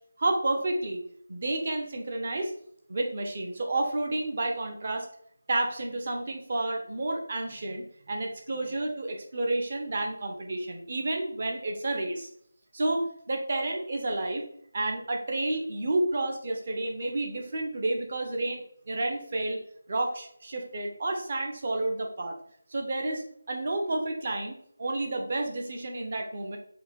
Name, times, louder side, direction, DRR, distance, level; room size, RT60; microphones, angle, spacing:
voice 1, 0.2-1.0 1.3-2.5 2.9-5.1 5.5-12.3 12.7-14.4 14.7-19.6 19.9-22.4 22.7-26.6, right 2 dB, 35° right, 3 dB, 1.1 m, -30 dB
5.8 x 3.7 x 4.3 m, 0.66 s
figure-of-eight pair, 180°, 0 cm